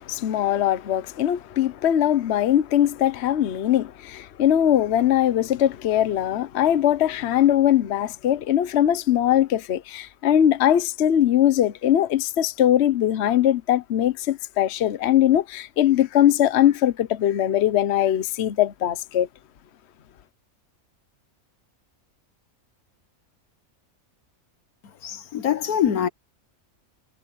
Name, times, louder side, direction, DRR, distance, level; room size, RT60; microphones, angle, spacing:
voice 1, 0.0-19.3, left 11 dB, 55° left, 1.0 m, -21 dB
voice 2, 25.0-26.1, left 9 dB, 85° left, 1.5 m, -23 dB
omnidirectional pair, 1.5 m